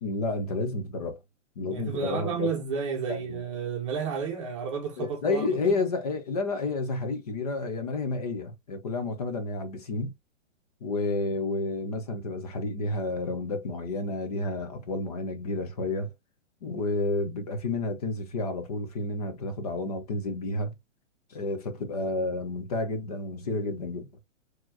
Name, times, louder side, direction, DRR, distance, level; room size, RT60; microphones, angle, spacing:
voice 1, 0.0-1.2 1.6-2.5 3.1-3.4 5.0-10.1 10.8-16.1 16.6-20.7 21.3-24.1, left 3 dB, 30° left, 0.8 m, -30 dB
voice 2, 1.7-5.8, right 6 dB, 25° right, 1.0 m, -32 dB
4.2 x 3.0 x 2.8 m
hypercardioid pair, 175°, 38 cm